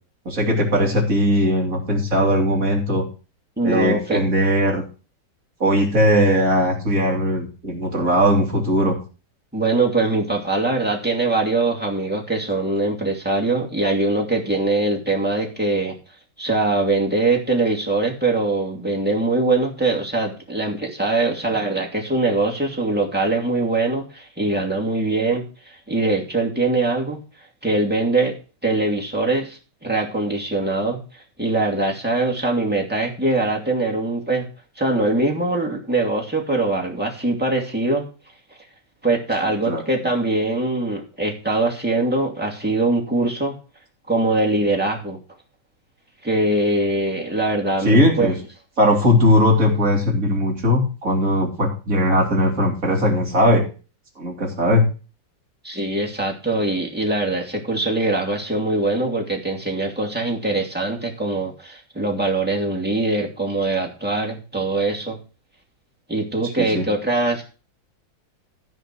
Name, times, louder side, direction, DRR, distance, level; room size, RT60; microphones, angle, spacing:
voice 1, 0.3-3.0 3.6-4.8 5.6-9.0 39.7-39.8 47.8-48.3 48.8-53.6 54.2-54.8 66.6-66.9, equal, 45° right, 0 dB, 2.9 m, -19 dB
voice 2, 3.6-4.2 9.5-15.9 16.4-27.2 27.6-28.3 28.6-34.4 34.8-38.0 39.0-43.5 44.1-45.2 46.2-48.3 55.6-65.2 66.1-67.5, right 2 dB, 5° right, -2 dB, 2.5 m, -22 dB
14.0 x 5.0 x 6.1 m, 0.35 s
omnidirectional pair, 2.1 m